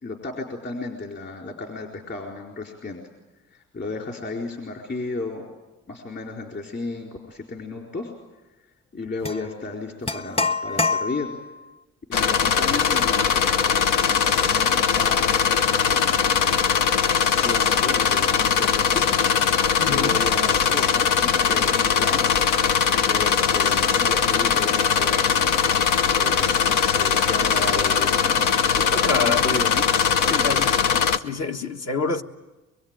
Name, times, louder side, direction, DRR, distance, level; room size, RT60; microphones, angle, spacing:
voice 1, 0.0-3.0 3.5-5.5 5.9-8.1 8.9-11.3 12.1-13.4 14.3-15.3 17.3-19.0 19.8-22.3 22.9-25.5 25.8-29.9 30.3-30.6, left 3 dB, 40° left, 4.4 m, -33 dB
sound 1, 9.2-9.4 10.1-11.5, left 3 dB, 20° left, 0.9 m, -25 dB
sound 2, 12.1-31.2, left 7 dB, 90° left, 1.0 m, -20 dB
voice 2, 19.8-20.2 29.0-29.5 30.2-30.8 31.2-32.2, left 4 dB, 60° left, 1.6 m, -27 dB
24.0 x 23.0 x 9.0 m
cardioid pair, 90°, 30 cm